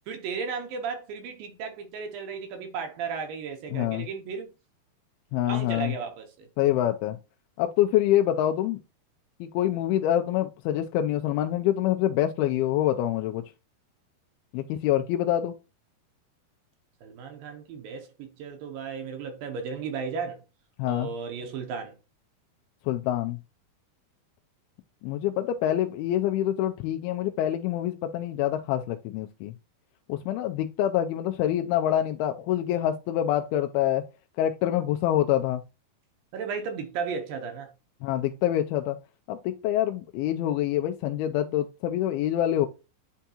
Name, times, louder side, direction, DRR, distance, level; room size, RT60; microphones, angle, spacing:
voice 1, 0.1-4.5 5.3-6.5 17.0-20.4 20.8-22.0 36.3-37.7, right 5 dB, 75° right, 2.5 m, -35 dB
voice 2, 3.7-4.1 5.3-5.9 6.6-7.2 7.6-8.8 9.4-13.4 14.5-15.6 20.8-21.1 22.9-23.4 25.0-29.5 30.1-34.0 34.4-35.6 38.0-39.0 39.3-42.7, left 12 dB, 85° left, 2.4 m, -26 dB
10.0 x 3.5 x 2.8 m
omnidirectional pair, 4.4 m